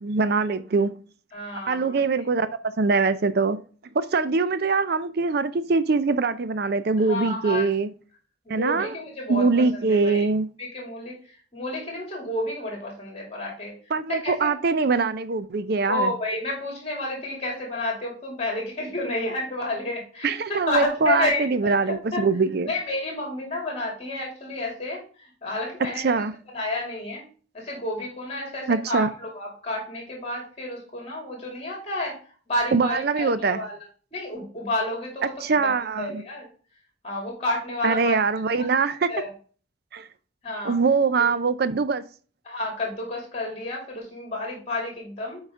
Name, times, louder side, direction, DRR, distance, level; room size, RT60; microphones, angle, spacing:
voice 1, 0.0-0.9 1.7-3.6 3.9-7.9 8.5-8.9 9.3-10.5 13.9-16.1 20.2-22.7 26.0-26.3 28.7-29.1 32.7-33.6 35.4-36.2 37.8-39.1 39.9-40.1 40.6-42.0, right 4 dB, 50° right, 0.4 m, -23 dB
voice 2, 1.3-2.0 7.1-7.7 8.4-9.5 9.7-10.2 10.6-13.7 14.1-14.5 15.9-22.2 22.7-27.2 27.5-32.2 32.5-33.8 34.1-35.3 35.7-36.5 37.0-38.2 38.5-39.3 40.4-40.8 42.4-45.4, left 2 dB, 30° left, 2.7 m, -30 dB
7.6 x 4.8 x 3.6 m
head